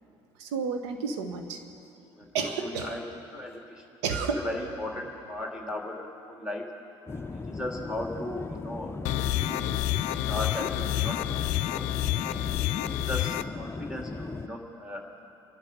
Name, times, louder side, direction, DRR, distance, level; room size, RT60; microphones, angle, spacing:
voice 1, 0.4-1.6 2.3-3.0 4.0-4.4, right 5 dB, 75° right, 5 dB, 1.5 m, -31 dB
voice 2, 2.1-3.0 3.3-3.8 4.2-6.7 7.3-9.0 9.4-9.6 9.9-11.9 12.3-12.6 12.9-15.1, left 1 dB, 5° right, -1 dB, 2.8 m, -37 dB
sound 1, 7.1-14.5, left 3 dB, 15° left, 0.6 m, -38 dB
sound 2, 9.1-13.4, left 15 dB, 60° left, 0.5 m, -29 dB
26.0 x 11.5 x 3.9 m, 2.8 s
hypercardioid pair, 60°, 14 cm